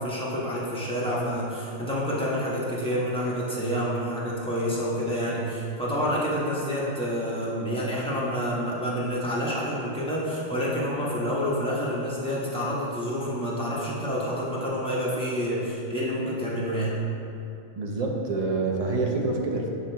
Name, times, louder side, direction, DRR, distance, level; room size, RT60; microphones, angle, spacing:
voice 1, 0.0-17.0, equal, 5° left, -8 dB, 1.1 m, -28 dB
voice 2, 17.7-19.7, right 3 dB, 45° right, -1 dB, 0.5 m, -27 dB
6.7 x 5.6 x 2.9 m, 2.7 s
omnidirectional pair, 1.3 m